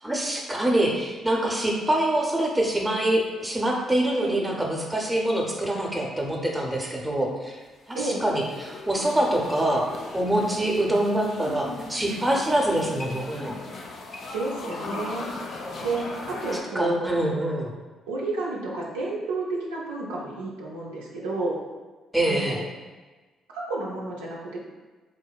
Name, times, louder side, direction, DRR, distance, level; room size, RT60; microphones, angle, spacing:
voice 1, 0.0-7.6 7.9-9.8 10.1-13.6 16.7-17.7 22.1-22.6, right 1 dB, 10° right, -1 dB, 0.5 m, -25 dB
sound 1, 7.7-16.6, left 2 dB, 55° left, 0.3 m, -38 dB
voice 2, 14.3-15.3 15.8-17.1 18.1-21.6 22.2-22.6 23.5-24.6, right 2 dB, 80° right, -4 dB, 0.3 m, -30 dB
2.7 x 2.1 x 2.3 m, 1.3 s
hypercardioid pair, 45°, 0 cm